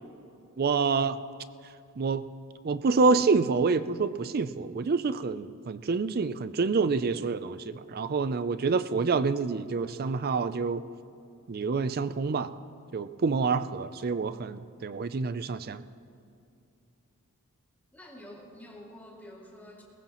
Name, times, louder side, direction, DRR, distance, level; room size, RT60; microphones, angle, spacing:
voice 1, 0.6-1.2 2.0-2.2 2.6-10.9 11.5-12.5 12.9-15.8, right 4 dB, 45° right, 13 dB, 0.5 m, -27 dB
voice 2, 17.9-19.8, left 1 dB, 10° left, -3 dB, 2.4 m, -48 dB
21.5 x 19.5 x 3.0 m, 2.6 s
head